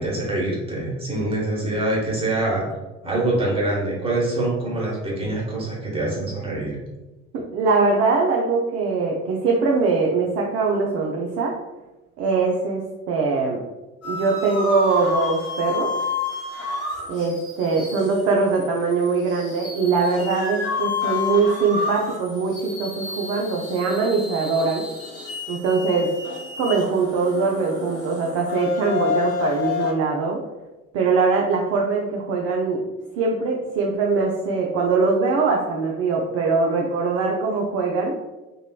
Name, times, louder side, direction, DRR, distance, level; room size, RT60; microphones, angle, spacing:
voice 1, 0.0-2.6 3.0-6.8, right 2 dB, 15° right, -4 dB, 1.0 m, -25 dB
voice 2, 7.3-11.5 12.2-13.6 14.0-15.9 17.1-24.8 25.5-26.1 26.6-30.4 30.9-32.8 33.2-38.2, right 4 dB, 40° right, -1 dB, 0.4 m, -22 dB
sound 1, 14.0-29.9, left 4 dB, 85° left, 0.9 m, -30 dB
3.0 x 2.2 x 2.3 m, 1.1 s
figure-of-eight pair, 60°, 41 cm